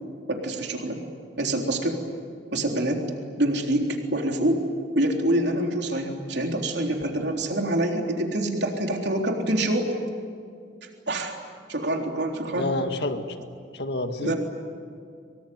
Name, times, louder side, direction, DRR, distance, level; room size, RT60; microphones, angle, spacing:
voice 1, 0.3-1.0 1.4-2.0 2.5-3.0 3.4-4.7 5.0-9.9 10.8-11.4 11.7-12.7 14.2-14.3, right 1 dB, 65° right, 2 dB, 3.8 m, -26 dB
voice 2, 12.5-13.4 13.7-14.3, left 2 dB, 65° left, 6 dB, 2.0 m, -28 dB
24.5 x 24.0 x 9.5 m, 2.3 s
head